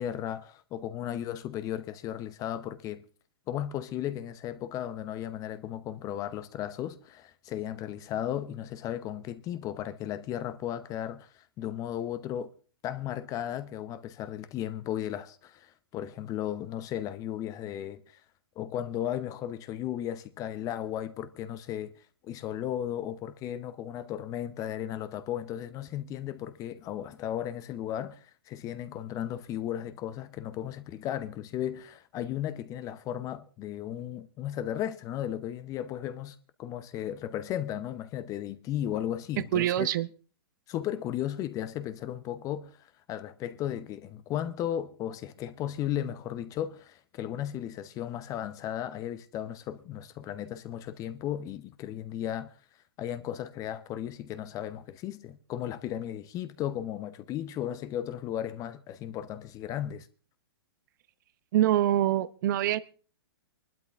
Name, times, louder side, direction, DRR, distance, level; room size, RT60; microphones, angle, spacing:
voice 1, 0.0-3.0 3.5-12.5 12.8-18.2 18.6-21.9 22.2-39.9 40.7-52.5 53.0-60.1, left 11 dB, 30° left, 0.8 m, -35 dB
voice 2, 39.5-40.1 61.5-62.8, right 13 dB, 55° right, 0.8 m, -25 dB
23.0 x 12.0 x 3.5 m
hypercardioid pair, 125°, 12 cm